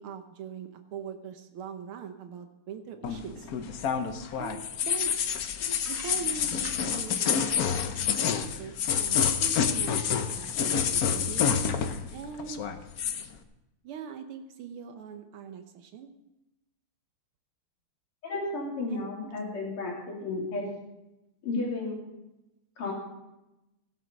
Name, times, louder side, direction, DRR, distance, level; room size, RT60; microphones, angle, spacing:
voice 1, 0.0-3.5 4.4-5.1 5.9-7.5 8.3-11.6 12.1-12.7 13.8-16.1 18.9-19.4, right 7 dB, 80° right, 7 dB, 1.8 m, -41 dB
sound 1, 3.0-12.1 12.4-13.3, left 7 dB, 60° left, 1.0 m, -28 dB
sound 2, 4.9-5.5 5.8-6.8, right 2 dB, 40° right, 2.6 m, -46 dB
voice 2, 18.2-20.7 21.4-22.0 22.8-22.9, left 3 dB, 85° left, -2 dB, 4.1 m, -33 dB
16.0 x 8.1 x 5.2 m, 0.94 s
omnidirectional pair, 2.4 m